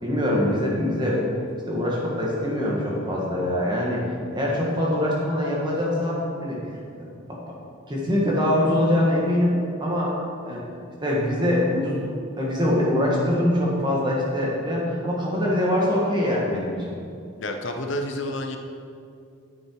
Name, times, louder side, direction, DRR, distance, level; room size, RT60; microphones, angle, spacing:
voice 1, 0.0-1.2 1.7-6.6 7.9-10.1 10.5-10.6 11.0-12.1 12.4-17.0, left 1 dB, 20° right, -4 dB, 1.9 m, -23 dB
voice 2, 17.4-18.6, left 1 dB, 60° left, 4 dB, 0.8 m, -29 dB
10.0 x 7.9 x 4.8 m, 2.4 s
head